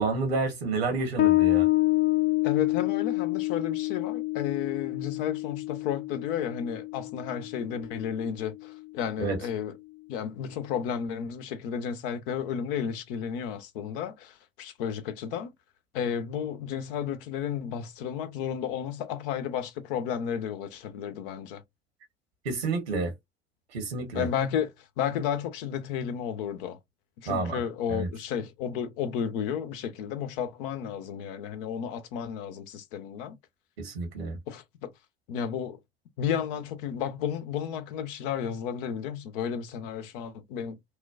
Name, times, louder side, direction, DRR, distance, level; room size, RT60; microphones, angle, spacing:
voice 1, 0.0-1.7 9.2-9.4 22.4-23.1 23.7-24.3 27.3-27.6 27.9-28.1 33.8-34.4, right 3 dB, 75° right, 1.2 m, -29 dB
Bass guitar, 1.2-8.3, left 20 dB, 35° left, 0.4 m, -27 dB
voice 2, 2.4-9.7 10.1-15.5 15.9-21.6 24.1-24.7 25.0-26.8 27.2-33.4 34.5-34.9 35.3-35.8 36.2-40.8, left 8 dB, 60° left, 0.7 m, -32 dB
3.0 x 2.2 x 2.3 m
figure-of-eight pair, 65°, 31 cm